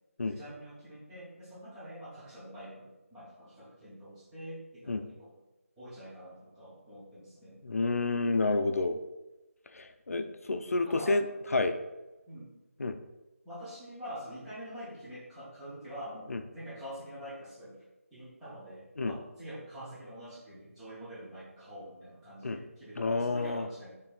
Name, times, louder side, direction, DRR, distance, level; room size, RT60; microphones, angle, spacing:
voice 1, 0.3-5.3 5.8-7.6 10.9-11.2 12.3-12.6 13.4-17.8 18.1-24.0, equal, ahead, -12 dB, 0.4 m, -46 dB
voice 2, 7.6-9.0 9.7-11.3 11.5-11.8 12.8-13.0 16.3-16.4 19.0-19.1 22.4-22.6 23.0-23.7, left 3 dB, 75° left, 8 dB, 0.4 m, -29 dB
4.2 x 3.2 x 2.4 m, 1.0 s
figure-of-eight pair, 170°, 8 cm